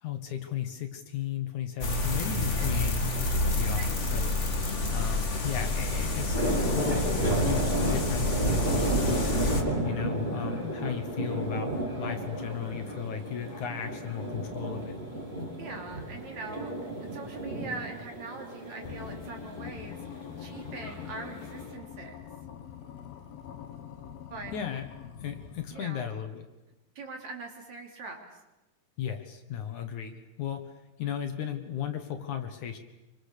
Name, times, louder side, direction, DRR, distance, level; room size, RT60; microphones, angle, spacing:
voice 1, 0.0-4.4 4.9-7.1 7.4-9.3 9.8-15.0 24.5-24.9 25.2-26.4 29.0-30.7 31.0-32.8, left 9 dB, 60° left, 7 dB, 2.7 m, -35 dB
sound 1, 1.8-9.6, left 2 dB, 30° left, 1.5 m, -28 dB
sound 2, 5.4-21.7, right 1 dB, 10° right, 3.7 m, -33 dB
voice 2, 11.1-11.4 15.6-16.7 17.1-20.0 20.4-22.1 24.3-24.5 25.7-26.1 27.0-28.3, right 3 dB, 55° right, 3 dB, 4.0 m, -42 dB
sound 3, 18.8-26.1, left 9 dB, 85° left, 3.4 m, -44 dB
27.0 x 25.0 x 6.7 m, 1.0 s
omnidirectional pair, 4.2 m